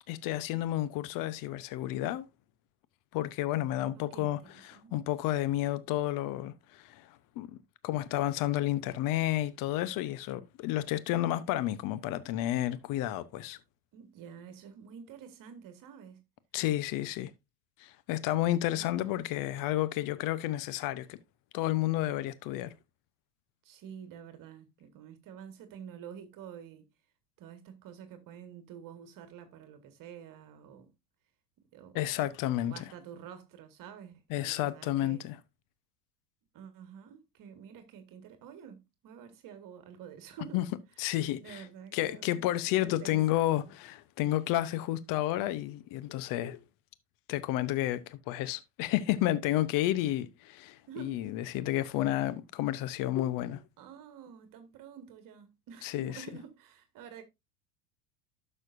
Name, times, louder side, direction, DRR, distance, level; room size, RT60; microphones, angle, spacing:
voice 1, 0.1-2.3 3.1-7.5 7.8-13.6 16.5-17.3 17.8-21.2 21.5-22.7 31.9-32.8 34.3-35.4 40.5-40.6 41.0-41.7 41.9-46.6 47.3-53.6 55.8-56.3, left 14 dB, 45° left, 0.8 m, -31 dB
voice 2, 3.9-4.3 4.7-4.9 13.9-16.2 18.8-19.1 23.6-26.9 27.4-30.9 31.7-32.4 32.6-35.3 36.5-40.6 41.4-43.7 50.9-51.2 53.8-57.2, right 8 dB, 45° right, 1.7 m, -49 dB
12.0 x 6.6 x 2.6 m
hypercardioid pair, 90°, 47 cm